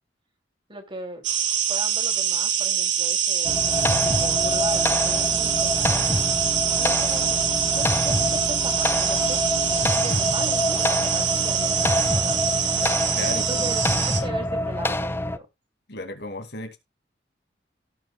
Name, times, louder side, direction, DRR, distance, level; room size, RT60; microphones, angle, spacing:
voice 1, 0.7-1.3 1.7-6.2 6.7-7.4 7.7-15.5, right 2 dB, 30° right, 3.0 m, -39 dB
sound 1, 1.2-14.2, right 9 dB, 85° right, 2.3 m, -24 dB
sound 2, 3.4-15.4, left 1 dB, 15° left, 0.6 m, -26 dB
voice 2, 13.1-14.0 15.9-16.8, left 2 dB, 65° left, 2.5 m, -35 dB
17.5 x 6.5 x 2.4 m
head